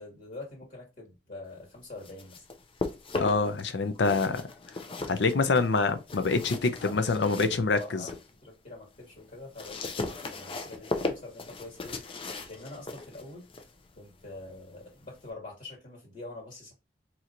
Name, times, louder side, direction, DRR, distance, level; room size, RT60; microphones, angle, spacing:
voice 1, 0.0-2.4 6.8-8.1 8.4-12.0 12.5-13.5 14.0-16.7, left 2 dB, 45° left, 1.9 m, -45 dB
sound 1, 1.8-3.6 3.9-8.3 8.7-15.3, left 3 dB, 30° left, 0.4 m, -38 dB
voice 2, 3.2-4.4 5.1-8.0, left 3 dB, 75° left, 0.6 m, -26 dB
4.3 x 2.8 x 2.5 m
head